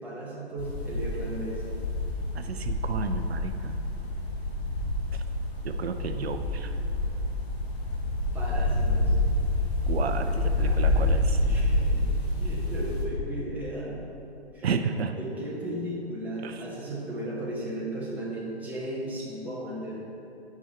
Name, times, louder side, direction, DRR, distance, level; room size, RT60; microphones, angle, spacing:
voice 1, 0.0-1.6 8.3-9.1 10.3-12.0 12.4-14.1 14.5-14.7 15.1-20.0, right 1 dB, 5° right, -6 dB, 1.0 m, -36 dB
sound 1, 0.6-13.0, left 1 dB, 70° left, 1.6 m, -27 dB
voice 2, 2.3-3.8 5.6-6.7 9.9-11.4 14.6-15.2 16.4-16.6, right 5 dB, 70° right, 7 dB, 0.5 m, -32 dB
7.2 x 4.9 x 4.4 m, 2.9 s
figure-of-eight pair, 130°, 33 cm